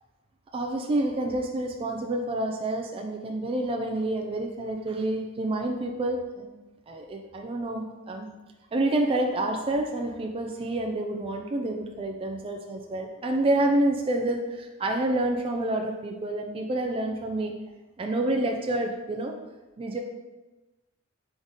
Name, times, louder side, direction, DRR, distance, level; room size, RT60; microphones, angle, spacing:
voice 1, 0.5-6.6 6.9-8.3 8.7-17.5 18.0-19.4 19.8-20.0, right 1 dB, 25° right, 2 dB, 0.3 m, -28 dB
4.0 x 3.5 x 3.6 m, 1.1 s
head